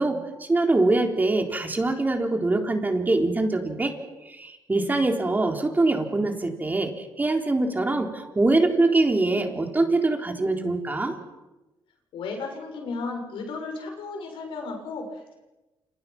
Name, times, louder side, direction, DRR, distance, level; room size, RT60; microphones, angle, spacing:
voice 1, 0.0-3.9 4.2-11.1, right 2 dB, 20° right, 3 dB, 3.8 m, -23 dB
voice 2, 12.1-15.3, left 3 dB, 85° left, 3 dB, 6.9 m, -34 dB
29.0 x 28.0 x 6.1 m, 1.1 s
cardioid pair, 110°, 9 cm